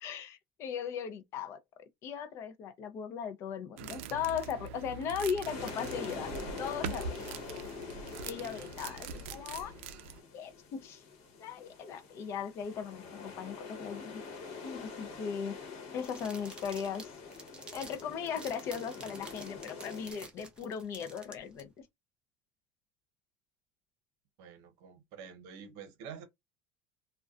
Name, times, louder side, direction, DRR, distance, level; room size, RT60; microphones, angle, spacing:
voice 1, 0.0-1.6 2.0-7.3 8.2-9.7 10.3-11.0 11.4-14.2 14.6-15.6 15.9-17.1 17.7-21.8, left 7 dB, 45° left, 0.5 m, -38 dB
sound 1, 3.8-10.2, right 5 dB, 85° right, 0.4 m, -43 dB
sound 2, 5.4-20.1, left 4 dB, 65° left, 1.0 m, -45 dB
sound 3, 16.0-21.6, right 3 dB, 15° right, 0.7 m, -50 dB
voice 2, 24.4-26.2, right 7 dB, 60° right, 0.8 m, -48 dB
2.4 x 2.2 x 2.3 m
supercardioid pair, 140°, 6 cm